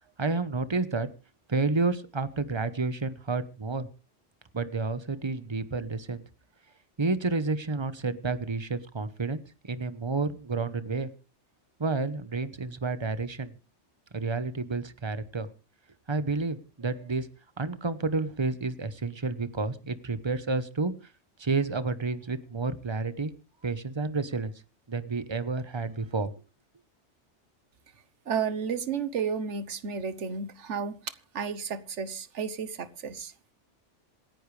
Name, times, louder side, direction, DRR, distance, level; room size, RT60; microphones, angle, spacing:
voice 1, 0.2-1.1 1.5-3.9 4.5-6.2 7.0-11.1 11.8-13.5 14.1-15.5 16.1-17.3 17.6-20.9 21.4-23.3 23.6-24.5 24.9-26.3, right 3 dB, 25° right, 1.0 m, -30 dB
voice 2, 28.3-33.3, right 6 dB, 75° right, 1.4 m, -32 dB
26.5 x 10.0 x 3.3 m
omnidirectional pair, 1.2 m